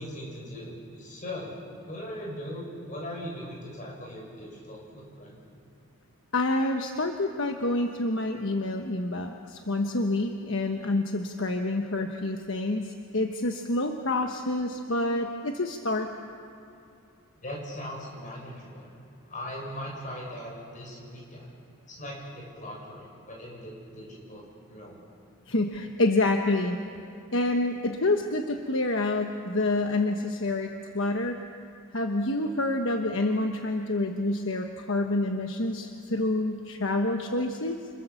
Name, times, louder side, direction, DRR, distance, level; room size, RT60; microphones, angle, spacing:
voice 1, 0.0-1.5 1.9-5.4 17.4-18.9 19.3-21.5 21.9-25.0, equal, 35° left, -2 dB, 7.2 m, -39 dB
voice 2, 6.3-16.1 25.5-26.8 27.3-31.4 31.9-37.9, left 2 dB, 65° left, 4 dB, 1.2 m, -27 dB
29.0 x 27.0 x 7.2 m, 2.5 s
head